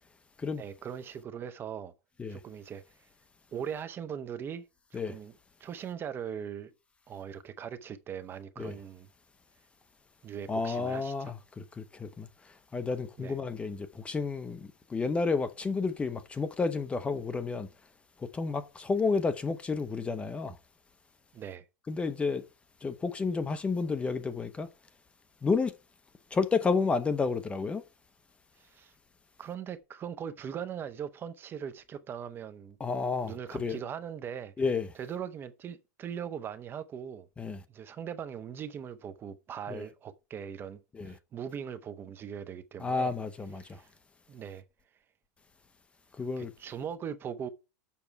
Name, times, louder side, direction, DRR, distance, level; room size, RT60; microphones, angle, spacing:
voice 1, 0.5-1.9 2.3-2.8 3.5-6.7 7.1-9.1 10.2-11.3 13.2-13.4 21.3-21.7 28.6-28.9 29.4-32.8 33.2-34.5 34.9-37.3 37.7-43.1 43.6-43.9 44.3-44.6 46.4-47.5, right 8 dB, 25° right, 0.7 m, -40 dB
voice 2, 10.5-12.3 12.7-17.7 18.2-20.5 21.9-22.4 22.8-24.7 25.4-25.7 26.3-27.8 32.8-33.8 34.6-34.9 37.4-37.6 39.7-39.8 41.0-41.1 42.8-43.8 46.2-46.5, left 4 dB, 10° left, 0.7 m, -31 dB
7.0 x 6.7 x 4.6 m
supercardioid pair, 150°, 10 cm